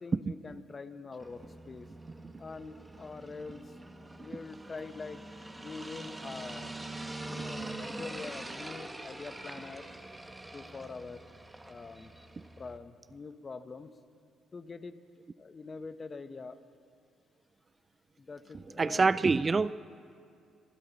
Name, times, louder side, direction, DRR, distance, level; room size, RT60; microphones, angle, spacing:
voice 1, 0.0-1.9 2.4-3.8 4.2-5.2 5.6-6.8 7.4-9.8 10.5-11.3 11.7-12.1 12.6-13.9 14.5-15.0 15.4-16.6 18.2-19.0, left 4 dB, 35° left, 11 dB, 0.8 m, -44 dB
sound 1, 1.2-12.8, right 2 dB, 10° right, 1.1 m, -44 dB
voice 2, 18.8-19.7, right 4 dB, 30° right, 16 dB, 0.3 m, -25 dB
26.0 x 13.5 x 4.0 m, 2.4 s
cardioid pair, 90°, 0 cm